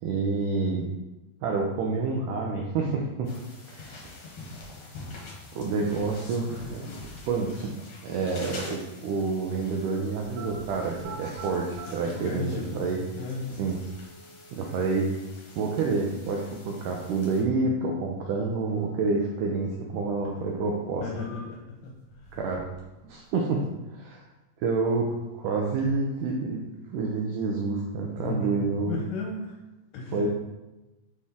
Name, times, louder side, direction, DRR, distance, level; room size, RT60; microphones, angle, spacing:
voice 1, 0.0-0.9 1.4-3.3 3.7-4.1 5.5-6.9 7.3-7.7 8.0-13.0 13.6-13.8 14.5-15.1 15.6-21.1 22.3-22.7 23.0-24.2 24.6-26.6 26.9-29.0 30.1-30.3, right 4 dB, 80° right, -1 dB, 2.0 m, -28 dB
sound 1, 3.2-17.4, left 2 dB, 60° left, 2.0 m, -46 dB
sound 2, 10.4-10.5 10.9-11.9 12.9-13.0 13.7-14.7 18.7-19.7 20.1-20.2 20.8-21.7 22.1-22.8 23.1-23.7, right 3 dB, 55° right, 1.8 m, -46 dB
voice 2, 12.0-12.7 13.2-13.5 21.0-21.6 21.8-21.9 22.2-22.4 28.1-29.5 29.9-30.3, left 3 dB, 75° left, -1 dB, 2.2 m, -34 dB
6.4 x 4.2 x 3.5 m, 1.0 s
omnidirectional pair, 4.2 m